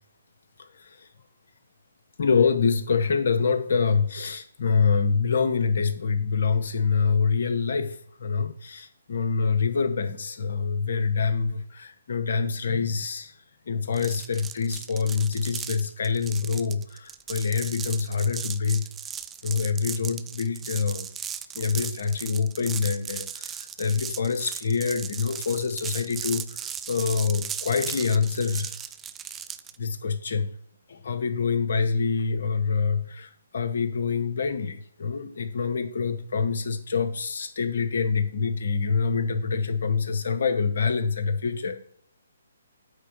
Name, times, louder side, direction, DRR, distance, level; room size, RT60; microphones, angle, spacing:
voice 1, 0.7-1.1 2.2-13.3 13.7-18.9 19.4-21.1 21.5-28.8 29.8-30.5 30.9-41.8, left 5 dB, 60° left, 8 dB, 1.1 m, -26 dB
sound 1, 13.9-29.8, right 8 dB, 15° right, 0.4 m, -37 dB
8.7 x 3.9 x 5.7 m, 0.63 s
figure-of-eight pair, 140°, 0 cm